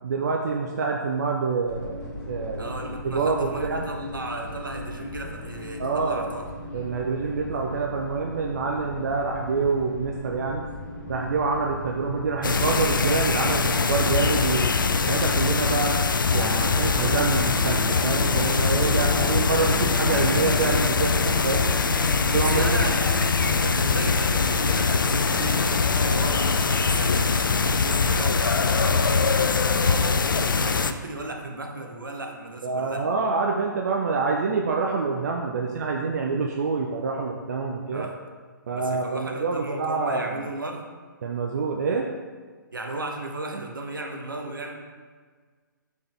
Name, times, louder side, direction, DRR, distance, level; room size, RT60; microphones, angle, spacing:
voice 1, 0.0-2.0 2.3-2.7 3.0-3.9 5.8-6.3 6.7-10.6 11.1-14.7 15.1-16.0 16.3-21.7 22.3-22.9 32.6-38.1 38.7-40.4 41.2-42.1, right 4 dB, 50° right, 1 dB, 0.6 m, -26 dB
sound 1, 1.7-16.2, left 1 dB, 40° left, 1.6 m, -38 dB
voice 2, 2.6-6.4 19.0-19.6 19.8-20.0 22.3-33.1 37.9-38.2 38.7-40.9 42.7-44.8, right 2 dB, 75° right, 2 dB, 0.9 m, -35 dB
sound 2, 12.4-30.9, left 4 dB, 70° left, 0.4 m, -22 dB
sound 3, 16.3-23.7, left 2 dB, 5° left, 0.6 m, -35 dB
6.6 x 4.3 x 3.6 m, 1.6 s
figure-of-eight pair, 125°, 11 cm